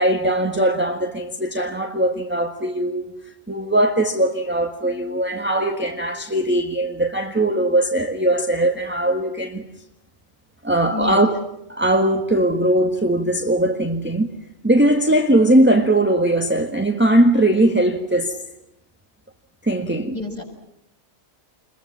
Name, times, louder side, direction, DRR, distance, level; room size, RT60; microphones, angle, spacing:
voice 1, 0.0-3.1 3.5-9.6 10.6-11.3 11.7-14.3 14.6-18.4 19.6-20.1, right 1 dB, 10° right, 1.6 m, -19 dB
voice 2, 10.9-11.3 20.1-20.4, left 4 dB, 30° left, 6.9 m, -29 dB
29.0 x 22.5 x 7.4 m
omnidirectional pair, 1.4 m